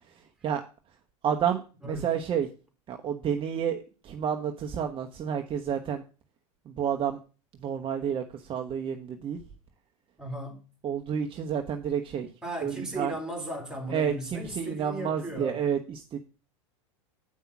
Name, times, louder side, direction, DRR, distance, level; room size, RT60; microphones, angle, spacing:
voice 1, 1.2-2.5 2.9-6.0 6.7-7.2 7.6-9.4 10.8-12.3 12.6-13.1 13.9-16.2, right 8 dB, 35° right, 1.0 m, -30 dB
voice 2, 1.8-2.1 10.2-10.6 12.4-15.6, right 1 dB, 5° right, 3.2 m, -36 dB
8.4 x 5.5 x 5.9 m
hypercardioid pair, 95°, 16 cm